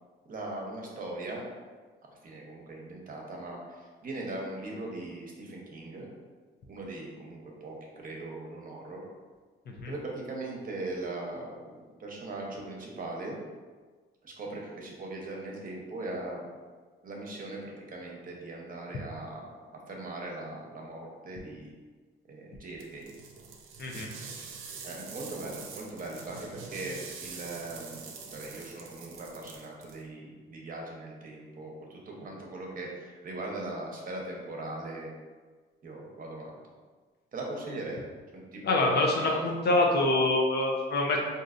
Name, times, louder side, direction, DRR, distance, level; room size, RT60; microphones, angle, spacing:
voice 1, 0.3-1.4 2.2-6.1 6.7-9.0 9.9-11.7 12.0-13.4 14.2-16.5 17.0-19.6 19.9-21.7 22.3-23.1 24.8-35.1 35.8-36.5 37.3-38.0 38.3-40.1, right 2 dB, 45° right, -1 dB, 0.8 m, -39 dB
sound 1, 22.8-30.0, right 5 dB, 90° right, 0.5 m, -45 dB
voice 2, 38.6-41.2, left 2 dB, 55° left, 0 dB, 0.6 m, -25 dB
3.9 x 2.6 x 2.5 m, 1.4 s
cardioid pair, 90°, 20 cm